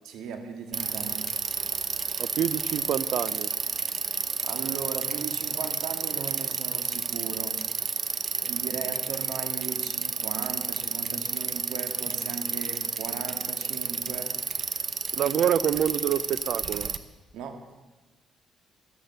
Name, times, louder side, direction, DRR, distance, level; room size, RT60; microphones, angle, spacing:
voice 1, 0.0-1.3 4.4-7.6 8.4-14.6 17.3-17.7, right 6 dB, 90° right, 6 dB, 1.9 m, -38 dB
Bicycle, 0.7-17.0, right 6 dB, 45° right, 1.0 m, -31 dB
voice 2, 2.2-3.5 15.1-16.9, right 9 dB, 70° right, 16 dB, 0.7 m, -27 dB
13.0 x 12.0 x 8.0 m, 1.2 s
cardioid pair, 90°, 0 cm